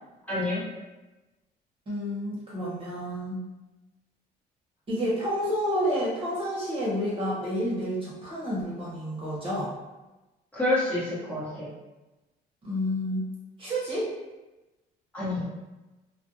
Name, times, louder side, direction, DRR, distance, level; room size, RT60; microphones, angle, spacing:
voice 1, 0.3-0.6 10.5-11.7 15.1-15.4, left 2 dB, 10° left, -10 dB, 1.0 m, -28 dB
voice 2, 1.9-3.4 4.9-9.7 12.6-13.3 13.6-14.1, equal, 30° right, -7 dB, 1.0 m, -29 dB
2.4 x 2.2 x 2.7 m, 1.1 s
cardioid pair, 110°, 17 cm